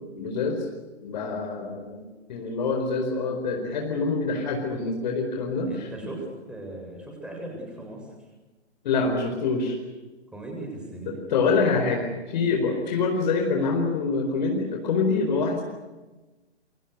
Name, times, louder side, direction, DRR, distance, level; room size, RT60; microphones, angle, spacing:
voice 1, 0.1-0.7 1.0-2.0 2.3-5.9 8.8-9.8 11.3-15.6, left 4 dB, 40° left, 2 dB, 4.6 m, -25 dB
voice 2, 5.7-8.3 10.3-11.2, right 2 dB, 5° right, 0 dB, 7.4 m, -38 dB
28.5 x 24.5 x 6.8 m, 1.1 s
figure-of-eight pair, 125°, 34 cm